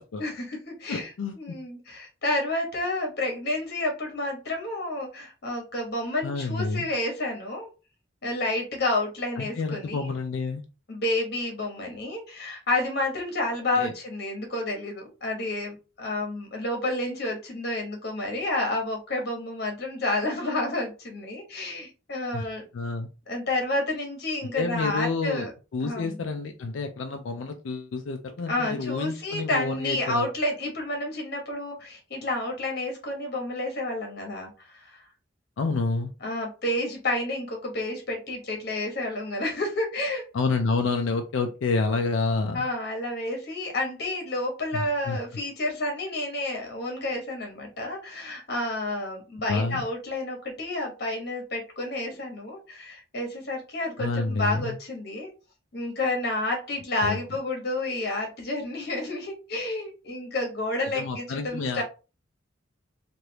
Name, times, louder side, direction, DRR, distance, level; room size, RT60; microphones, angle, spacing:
voice 1, 0.2-7.7 8.2-10.1 10.9-22.7 23.3-25.5 25.8-26.2 28.5-35.0 36.2-40.2 42.5-55.3 55.7-61.8, left 2 dB, 55° left, 2 dB, 1.1 m, -30 dB
voice 2, 0.9-1.6 6.2-6.9 9.4-10.6 13.8-13.9 22.3-22.5 22.7-23.1 24.5-25.5 25.7-30.3 35.6-36.1 40.3-42.6 44.7-45.2 49.5-49.8 54.0-54.8 57.0-57.2 60.9-61.8, left 3 dB, 75° left, 5 dB, 0.4 m, -29 dB
3.2 x 2.5 x 2.8 m, 0.32 s
head